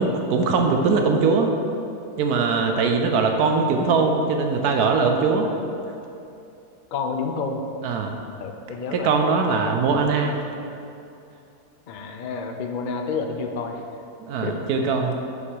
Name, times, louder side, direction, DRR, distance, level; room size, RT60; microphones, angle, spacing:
voice 1, 0.0-1.5 2.2-5.5 7.8-8.2 8.9-10.4 14.2-15.2, right 4 dB, 80° right, 3 dB, 1.1 m, -21 dB
voice 2, 6.9-7.6 8.4-9.1 11.9-13.8 14.4-14.6, left 4 dB, 75° left, 4 dB, 0.4 m, -29 dB
7.0 x 5.3 x 4.8 m, 2.7 s
omnidirectional pair, 1.7 m